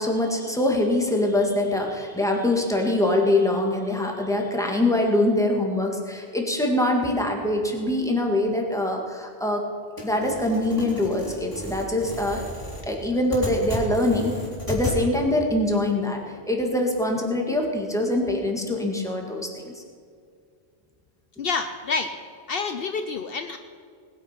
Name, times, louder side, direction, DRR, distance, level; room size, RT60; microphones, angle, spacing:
voice 1, 0.0-9.6 10.0-12.4 12.8-14.3 14.7-16.2 16.5-19.8, left 1 dB, 5° left, 1 dB, 1.9 m, -24 dB
sound 1, 10.0-15.0, equal, 20° right, 3.4 m, -34 dB
voice 2, 21.4-22.2 22.5-23.6, left 4 dB, 65° left, 8 dB, 0.9 m, -28 dB
19.5 x 9.1 x 5.9 m, 2.3 s
omnidirectional pair, 1.1 m